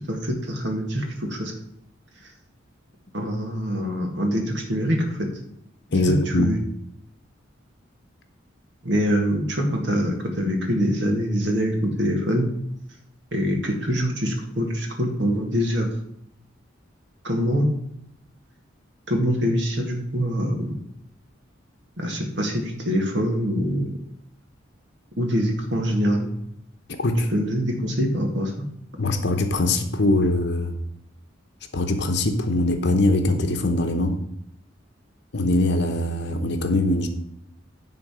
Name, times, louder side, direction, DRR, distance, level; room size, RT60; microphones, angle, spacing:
voice 1, 0.1-1.5 3.1-5.3 6.1-6.6 8.8-12.5 13.3-15.9 17.2-17.7 19.1-20.7 22.0-23.9 25.2-26.3 27.3-28.5, equal, 60° right, 2 dB, 1.8 m, -24 dB
voice 2, 5.9-6.6 27.0-27.3 29.0-30.7 31.7-34.2 35.3-37.1, left 2 dB, 60° left, 6 dB, 0.9 m, -22 dB
10.5 x 3.9 x 6.2 m, 0.77 s
head